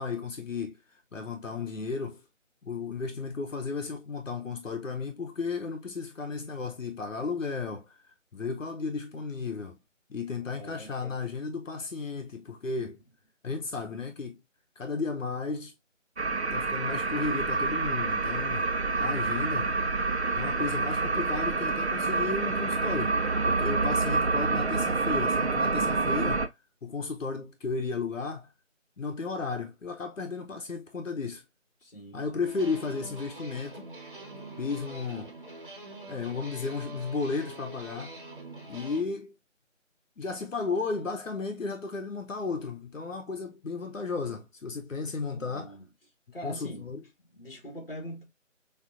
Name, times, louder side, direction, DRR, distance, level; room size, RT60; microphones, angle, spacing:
voice 1, 0.0-2.2 2.6-9.8 10.1-13.0 13.4-14.4 14.8-15.7 16.5-18.7 18.9-19.7 20.3-26.5 26.8-28.5 29.0-31.4 32.1-33.9 34.6-35.3 36.1-38.2 38.7-39.4 40.2-45.8 46.4-47.0, left 4 dB, 85° left, 0.8 m, -34 dB
voice 2, 10.5-11.1 12.8-12.9 31.8-32.3 45.3-45.8 46.3-46.8 47.3-48.2, equal, 50° left, 1.5 m, -42 dB
sound 1, 16.2-26.5, right 3 dB, 60° right, 0.6 m, -27 dB
sound 2, 32.4-39.0, right 2 dB, 45° right, 1.0 m, -45 dB
5.0 x 2.4 x 2.4 m
figure-of-eight pair, 170°, 38 cm